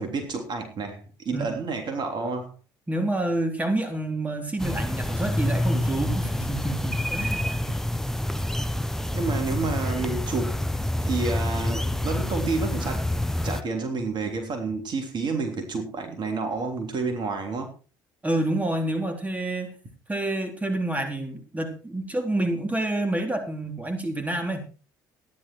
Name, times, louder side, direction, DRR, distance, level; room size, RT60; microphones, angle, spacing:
voice 1, 0.0-2.5 9.1-10.6 11.0-13.1 13.4-17.7, right 4 dB, 45° right, 5 dB, 3.4 m, -29 dB
voice 2, 2.9-7.7 18.2-19.7 20.1-24.6, right 1 dB, 15° right, 5 dB, 3.7 m, -28 dB
sound 1, 4.6-13.6, left 1 dB, 5° left, 1.0 m, -27 dB
14.0 x 11.0 x 4.5 m, 0.34 s
hypercardioid pair, 60°, 10 cm